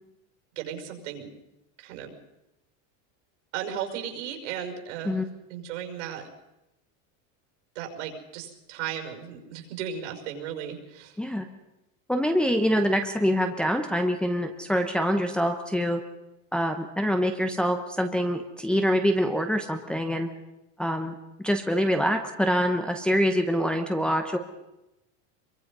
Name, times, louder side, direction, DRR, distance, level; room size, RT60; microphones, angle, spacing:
voice 1, 0.6-1.3 1.8-2.1 3.5-5.2 5.5-6.3 7.8-11.2, right 9 dB, 70° right, 5 dB, 5.7 m, -35 dB
voice 2, 11.2-11.5 12.1-16.0 16.5-20.3 20.8-21.1 21.4-24.4, equal, 5° left, 4 dB, 0.9 m, -25 dB
25.5 x 23.0 x 5.5 m, 0.93 s
supercardioid pair, 175°, 38 cm